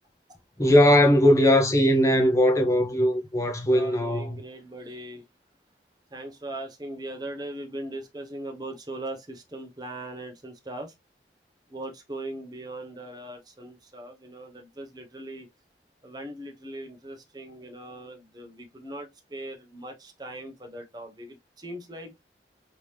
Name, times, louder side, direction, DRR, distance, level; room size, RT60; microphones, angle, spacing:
voice 1, 0.6-4.4, equal, 20° left, 0.7 m, -20 dB
voice 2, 3.7-5.2 6.1-10.9 11.7-15.5 16.0-22.1, right 1 dB, 25° right, 0.8 m, -39 dB
3.4 x 2.9 x 3.2 m
head